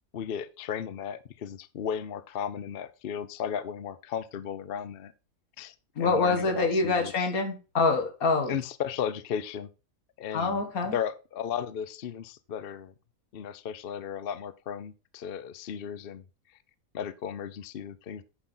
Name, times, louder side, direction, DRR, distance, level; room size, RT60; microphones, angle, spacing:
voice 1, 0.1-5.1 5.6-7.3 8.5-9.7 10.2-10.6 10.9-12.9 13.3-16.2 16.9-18.2, left 8 dB, 55° left, 15 dB, 0.7 m, -35 dB
voice 2, 6.0-8.6 10.3-11.0, left 3 dB, 75° left, 7 dB, 2.0 m, -26 dB
9.9 x 6.0 x 3.9 m, 0.32 s
omnidirectional pair, 1.5 m